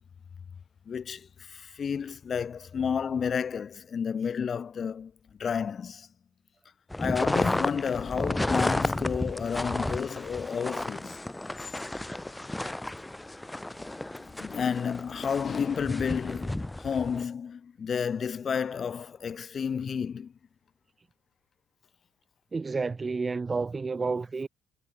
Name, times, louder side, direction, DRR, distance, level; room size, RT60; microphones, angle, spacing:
voice 1, 0.9-5.1 5.4-6.1 7.0-11.2 14.0-20.3, left 7 dB, 45° left, 2.9 m, -31 dB
sound 1, 6.9-17.2, left 1 dB, 10° left, 1.0 m, -32 dB
voice 2, 22.5-24.5, right 4 dB, 25° right, 0.9 m, -30 dB
cardioid pair, 100°, 0 cm